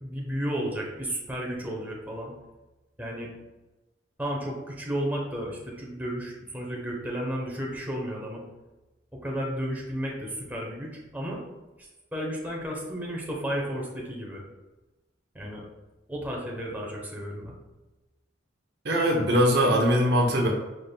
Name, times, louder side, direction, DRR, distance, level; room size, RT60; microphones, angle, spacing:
voice 1, 0.0-2.3 3.0-3.3 4.2-8.4 9.2-11.4 12.1-14.4 15.3-15.6 16.1-17.5, equal, 10° right, -2 dB, 0.8 m, -33 dB
voice 2, 18.8-20.5, equal, 60° right, 0 dB, 0.8 m, -21 dB
5.1 x 4.1 x 2.2 m, 1.1 s
head